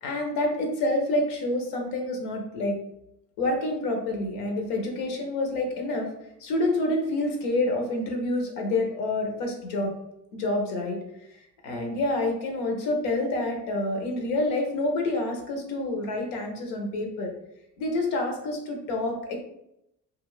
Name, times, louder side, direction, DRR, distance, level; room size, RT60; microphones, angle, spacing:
voice 1, 0.0-2.8 3.4-6.1 6.4-9.9 10.3-11.0 11.6-17.3 17.8-19.4, left 2 dB, 85° left, 2 dB, 0.8 m, -28 dB
2.4 x 2.4 x 3.1 m, 0.80 s
supercardioid pair, 80°, 38 cm